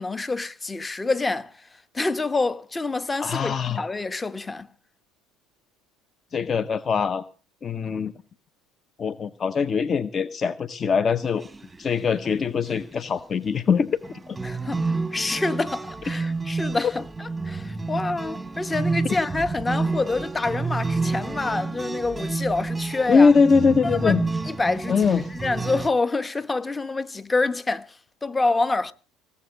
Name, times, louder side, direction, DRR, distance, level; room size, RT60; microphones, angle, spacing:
voice 1, 0.0-1.5 1.9-4.7 14.4-23.3 24.0-24.2 24.4-28.0 28.2-28.9, left 3 dB, 20° left, 1.1 m, -27 dB
voice 2, 3.2-3.8 6.3-7.2 7.6-8.1 9.0-11.5 11.8-14.0 14.3-14.4 23.1-24.2 24.9-25.3, left 5 dB, 35° left, 0.7 m, -22 dB
sound 1, 11.3-11.9 12.2-12.3 12.7-12.9 14.0-25.9, right 3 dB, 15° right, 1.1 m, -29 dB
18.5 x 7.3 x 7.5 m
hypercardioid pair, 70°, 0 cm